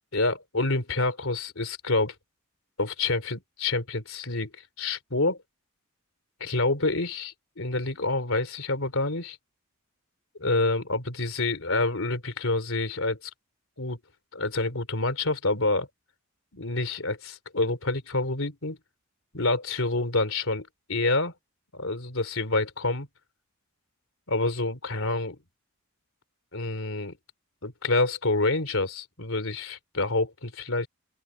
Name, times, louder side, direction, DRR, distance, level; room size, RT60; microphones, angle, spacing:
voice 1, 0.1-2.1 2.8-4.5 4.8-5.4 6.4-9.4 10.4-13.3 13.8-14.0 14.3-15.9 16.5-18.8 19.3-21.3 21.7-23.1 24.3-25.4 26.5-27.2 27.6-30.9, left 2 dB, 65° left, 3.3 m, -27 dB
open air
head